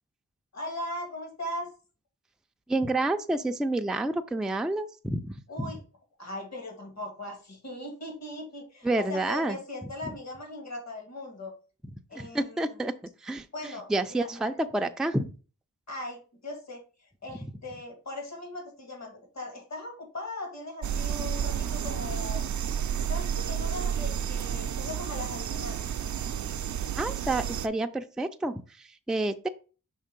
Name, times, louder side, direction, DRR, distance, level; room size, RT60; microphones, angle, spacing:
voice 1, 0.5-1.7 5.5-5.8 6.2-11.5 12.1-12.6 13.5-14.3 15.9-22.4 23.1-26.0, left 1 dB, 55° left, 2 dB, 2.0 m, -39 dB
voice 2, 2.7-5.7 8.8-9.6 10.0-10.1 12.1-12.9 13.2-15.3 26.9-29.5, right 2 dB, ahead, 7 dB, 0.4 m, -29 dB
sound 1, 20.8-27.7, right 8 dB, 60° right, 0.5 m, -31 dB
5.5 x 3.4 x 5.1 m, 0.36 s
wide cardioid pair, 100°, 33 cm